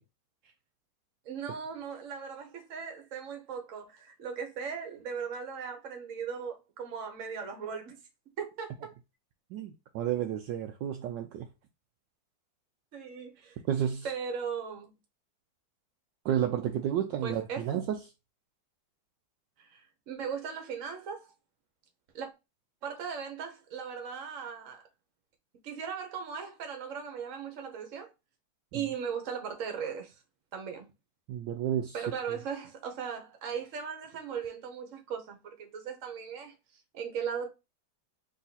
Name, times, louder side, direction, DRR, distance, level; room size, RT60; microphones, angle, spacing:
voice 1, 1.2-8.0 8.4-8.9 12.9-13.6 14.0-14.9 17.2-17.6 19.6-21.3 22.1-22.3 22.8-24.8 25.6-28.1 28.7-30.2 30.5-30.9 31.9-36.5 36.9-37.5, right 6 dB, 50° right, 1.2 m, -38 dB
voice 2, 9.5-11.5 13.7-14.1 16.2-18.0 31.3-32.0, right 10 dB, 75° right, 1.2 m, -31 dB
3.7 x 3.1 x 4.0 m
omnidirectional pair, 2.2 m